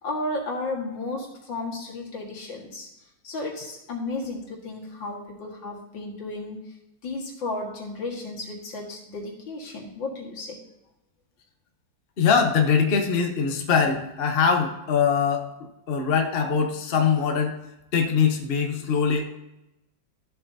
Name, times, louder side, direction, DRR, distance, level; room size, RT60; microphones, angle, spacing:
voice 1, 0.0-2.9 3.2-6.6 7.0-10.6, left 2 dB, 75° left, -1 dB, 2.6 m, -33 dB
voice 2, 12.2-15.5 15.9-17.6 17.9-19.3, left 6 dB, 40° left, 3 dB, 0.9 m, -22 dB
13.5 x 7.3 x 2.8 m, 0.91 s
omnidirectional pair, 2.1 m